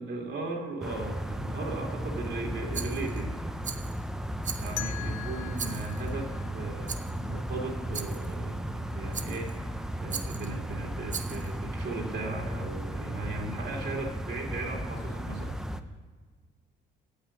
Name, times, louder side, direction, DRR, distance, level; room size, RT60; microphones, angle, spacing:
voice 1, 0.0-3.3 4.6-15.6, right 3 dB, 65° right, 0 dB, 2.3 m, -37 dB
sound 1, 0.8-15.8, equal, 5° right, 0.6 m, -35 dB
Rattle, 2.7-3.2 3.6-4.0 4.4-5.0 5.5-6.1 6.9-7.2 7.9-8.3 9.1-9.6 10.1-10.5 11.1-11.5, right 6 dB, 40° right, 0.8 m, -39 dB
sound 2, 4.8-7.6, left 14 dB, 75° left, 0.5 m, -42 dB
8.8 x 7.4 x 7.2 m, 1.5 s
cardioid pair, 90°, 20 cm